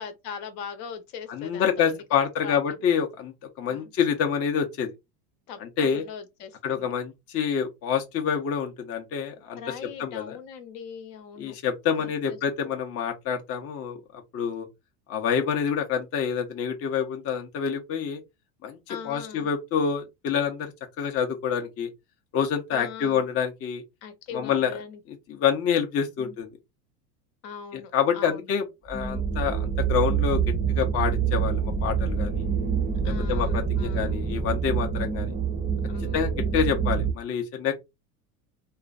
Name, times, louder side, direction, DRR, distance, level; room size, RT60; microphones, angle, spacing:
voice 1, 0.0-2.6 3.7-3.9 5.5-6.9 9.6-11.6 12.3-12.4 18.9-19.5 22.7-23.2 24.0-25.0 26.2-26.4 27.4-28.5 33.0-34.2 35.9-36.3, left 6 dB, 60° left, 0.8 m, -40 dB
voice 2, 1.3-4.9 5.6-6.0 6.6-9.6 10.0-10.4 11.4-14.7 15.1-18.2 18.6-20.7 21.0-21.9 22.3-23.8 24.3-24.8 25.1-26.5 27.7-30.4 30.7-32.4 33.1-35.3 36.1-37.7, left 7 dB, 30° left, 0.5 m, -27 dB
sound 1, 28.9-37.1, right 6 dB, 20° right, 0.6 m, -26 dB
2.4 x 2.1 x 2.4 m
hypercardioid pair, 95°, 46 cm